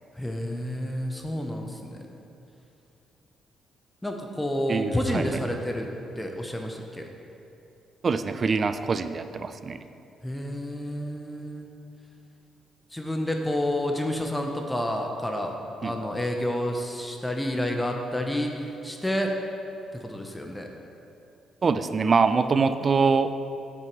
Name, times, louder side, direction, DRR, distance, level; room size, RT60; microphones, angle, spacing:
voice 1, 0.1-2.2 4.0-5.9 6.2-7.1 10.2-11.7 12.9-15.5 15.8-19.3 19.9-20.7, left 1 dB, 10° left, 2 dB, 0.7 m, -29 dB
voice 2, 4.7-5.2 8.0-9.8 15.8-15.9 21.6-23.3, right 4 dB, 40° right, 11 dB, 0.3 m, -24 dB
7.7 x 6.1 x 4.6 m, 2.7 s
cardioid pair, 90°, 0 cm